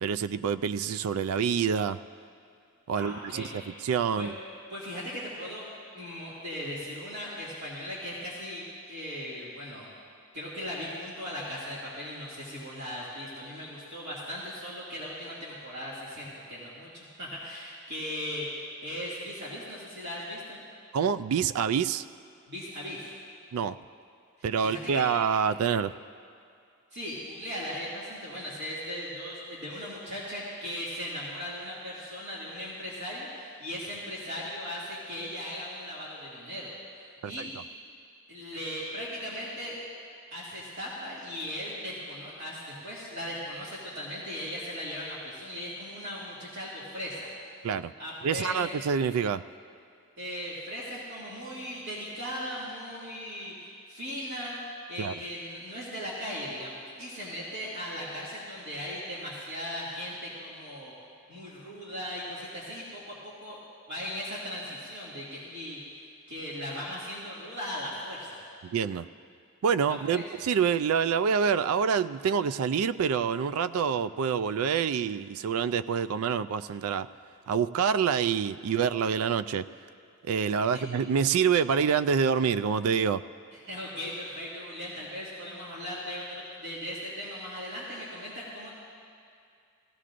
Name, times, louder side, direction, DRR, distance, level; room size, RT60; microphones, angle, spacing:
voice 1, 0.0-2.0 2.9-4.3 20.9-22.0 23.5-23.8 24.4-25.9 37.2-37.3 47.6-47.9 48.2-49.4 55.0-55.1 68.6-69.1 69.6-77.1 77.5-79.6 80.2-83.2, right 7 dB, 70° right, 14 dB, 0.3 m, -27 dB
voice 2, 2.9-3.5 4.1-4.3 4.7-5.7 5.9-9.9 10.3-20.6 22.5-23.1 24.4-25.1 26.9-36.7 37.2-37.5 38.3-39.8 40.3-47.3 48.0-48.6 50.2-54.6 54.9-60.9 61.3-63.6 63.9-65.8 66.3-68.4 69.9-70.3 80.7-80.9 83.5-88.7, equal, 50° right, -8 dB, 2.2 m, -38 dB
19.0 x 16.0 x 2.5 m, 2.4 s
head